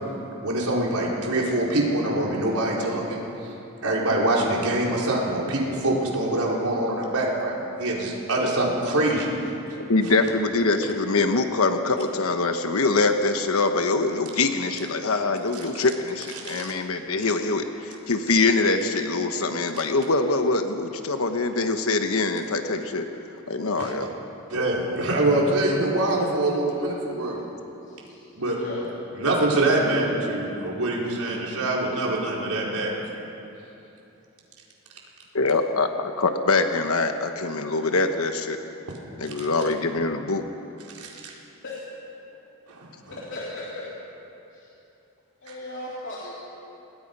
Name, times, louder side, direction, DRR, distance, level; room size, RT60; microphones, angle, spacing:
voice 1, 0.4-3.5 3.8-9.3 10.0-10.1 16.3-16.7 23.8-23.9 24.5-27.4 28.3-28.5 29.2-33.2 39.4-39.5 40.9-41.3 42.7-42.9, right 1 dB, 90° right, -3 dB, 4.6 m, -24 dB
voice 2, 9.8-23.1 23.5-24.1 35.3-38.6 39.2-40.4, left 3 dB, 75° left, 6 dB, 1.1 m, -24 dB
voice 3, 27.9-28.2 28.4-28.8 41.6-41.7 43.1-43.8 44.5-44.7 45.4-46.4, left 1 dB, 55° left, -7 dB, 3.4 m, -36 dB
29.0 x 20.5 x 5.5 m, 3.0 s
head